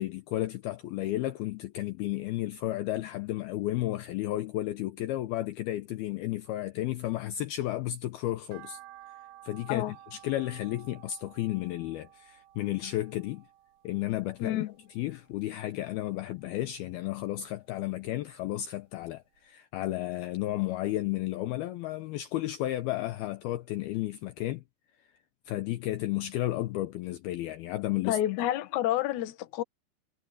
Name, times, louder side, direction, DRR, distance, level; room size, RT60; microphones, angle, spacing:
voice 1, 0.0-8.8 9.4-13.4 13.8-14.6 15.0-24.6 25.5-28.2, left 15 dB, 80° left, 2.3 m, -33 dB
sound 1, 8.5-14.8 15.2-16.3 16.7-18.1 18.5-18.6 19.0-19.1 19.4-19.5, right 13 dB, 60° right, 3.7 m, -53 dB
voice 2, 14.4-14.7 28.0-29.6, left 13 dB, 65° left, 2.0 m, -29 dB
omnidirectional pair, 5.2 m